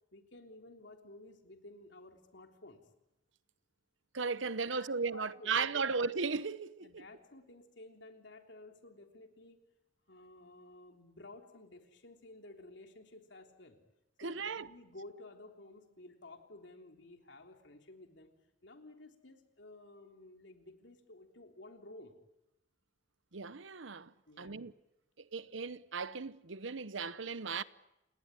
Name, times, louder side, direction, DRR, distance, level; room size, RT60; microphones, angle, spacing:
voice 1, 0.1-2.8 4.7-6.0 6.8-9.6 10.1-13.8 14.2-18.3 18.6-22.2 24.3-24.6, left 2 dB, 65° left, 3.5 m, -54 dB
voice 2, 4.1-7.0 14.2-14.7 23.3-24.1 24.4-24.7 25.3-27.6, right 5 dB, 80° right, 0.9 m, -36 dB
29.5 x 18.5 x 9.9 m
head